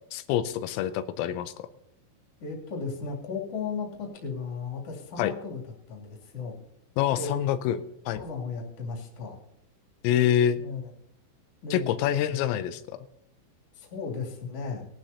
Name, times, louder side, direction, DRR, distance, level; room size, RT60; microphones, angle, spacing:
voice 1, 0.1-1.7 5.2-5.3 7.0-7.8 8.1-8.2 10.0-10.6 11.7-12.8, left 10 dB, 85° left, 11 dB, 3.3 m, -26 dB
voice 2, 2.4-6.5 7.2-7.3 8.1-9.4 10.6-10.9 11.6-12.3 13.7-14.9, left 5 dB, 35° left, -1 dB, 2.9 m, -35 dB
20.5 x 12.0 x 2.8 m, 0.74 s
omnidirectional pair, 5.9 m